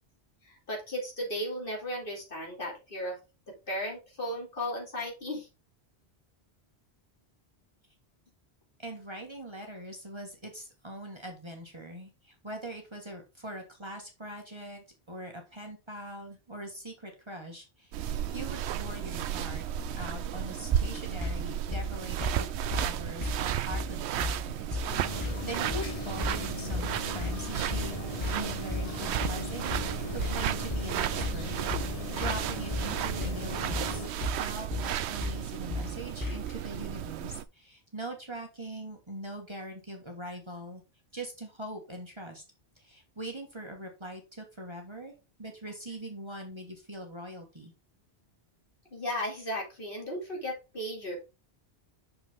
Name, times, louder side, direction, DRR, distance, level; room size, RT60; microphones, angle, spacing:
voice 1, 0.4-3.2 3.5-5.5 48.9-51.2, equal, 55° left, -1 dB, 3.0 m, -35 dB
voice 2, 8.8-19.6 19.9-27.9 28.3-31.5 31.8-40.8 41.1-42.4 42.8-45.1 45.4-47.7, right 1 dB, 25° right, 2 dB, 1.6 m, -42 dB
sound 1, 17.9-37.4, right 11 dB, 80° right, 0.8 m, -33 dB
sound 2, 20.7-36.6, left 3 dB, 20° left, 1.3 m, -36 dB
sound 3, 24.9-34.1, left 5 dB, 35° left, 1.0 m, -39 dB
6.4 x 5.9 x 3.6 m, 0.28 s
omnidirectional pair, 1.1 m